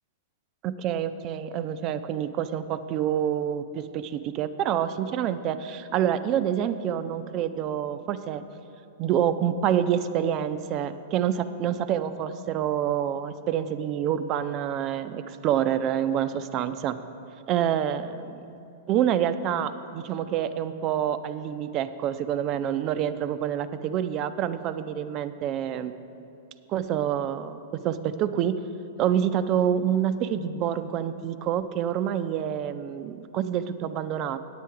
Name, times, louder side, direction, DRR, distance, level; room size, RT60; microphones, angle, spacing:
voice 1, 0.6-8.4 9.0-17.0 17.5-18.4 18.9-25.9 26.7-28.6 29.0-34.4, right 9 dB, 40° right, 12 dB, 0.4 m, -27 dB
9.0 x 8.6 x 4.7 m, 2.7 s
figure-of-eight pair, 100°, 0 cm